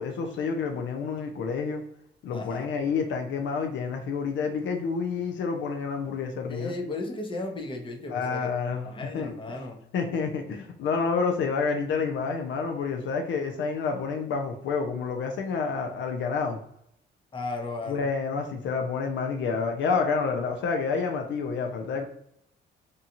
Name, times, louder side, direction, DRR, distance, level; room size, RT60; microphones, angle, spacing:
voice 1, 0.0-1.8 2.2-6.7 8.1-8.9 9.1-9.4 9.9-16.6 17.9-22.0, left 5 dB, 70° left, 4 dB, 0.5 m, -29 dB
voice 2, 2.3-2.7 6.5-8.6 8.8-9.8 17.3-18.0, left 2 dB, 25° left, 2 dB, 0.7 m, -35 dB
2.7 x 2.3 x 2.7 m, 0.73 s
cardioid pair, 90°, 20 cm